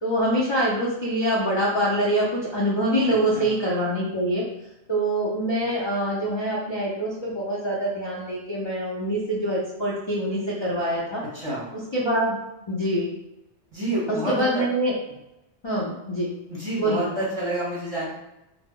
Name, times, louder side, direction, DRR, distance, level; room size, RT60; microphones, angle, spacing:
voice 1, 0.0-4.4 4.9-11.2 11.9-12.4 12.7-13.1 14.3-14.9 15.6-16.3 16.8-17.1, right 1 dB, 45° left, -6 dB, 0.3 m, -25 dB
voice 2, 3.1-3.5 11.2-11.8 13.7-14.6 16.5-18.2, right 1 dB, 30° right, -8 dB, 0.8 m, -29 dB
2.0 x 2.0 x 3.5 m, 0.92 s
omnidirectional pair, 1.2 m